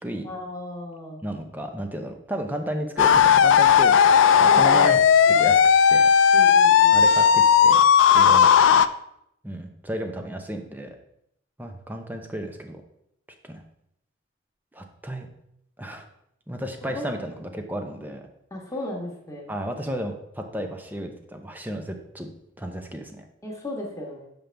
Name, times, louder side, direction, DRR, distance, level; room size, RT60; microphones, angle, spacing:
voice 1, 0.2-1.2 4.5-4.9 5.3-5.5 6.3-7.0 16.8-17.1 18.5-19.6 23.4-24.3, left 1 dB, 15° left, -1 dB, 1.4 m, -36 dB
voice 2, 1.2-5.0 5.3-5.6 5.9-6.5 6.9-7.8 8.1-8.5 9.4-11.0 11.6-12.8 13.4-13.6 14.7-15.3 15.8-16.0 16.5-18.3 19.5-23.3, right 1 dB, 10° right, 5 dB, 0.7 m, -33 dB
sound 1, 3.0-8.9, left 7 dB, 75° left, 0.3 m, -16 dB
7.4 x 5.2 x 3.4 m, 0.75 s
head